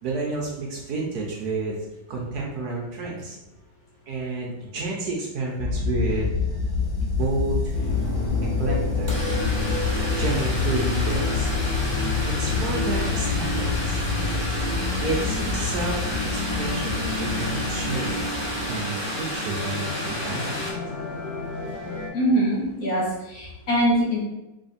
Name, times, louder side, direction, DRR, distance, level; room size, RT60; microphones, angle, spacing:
voice 1, 0.0-1.8 2.1-3.4 4.1-6.6 7.0-7.8 8.6-9.1 10.1-11.5 12.2-14.0 15.0-16.0 16.3-18.3 18.7-20.7, right 3 dB, 60° right, -2 dB, 1.1 m, -30 dB
sound 1, 5.6-18.8, left 5 dB, 90° left, 1.4 m, -28 dB
sound 2, 7.0-7.1 7.3-20.7, left 1 dB, 30° right, 0.5 m, -32 dB
sound 3, 7.7-22.1, left 1 dB, 25° left, 0.6 m, -31 dB
voice 2, 22.1-24.2, equal, 55° left, -4 dB, 1.3 m, -23 dB
3.6 x 3.4 x 4.2 m, 0.96 s
omnidirectional pair, 2.1 m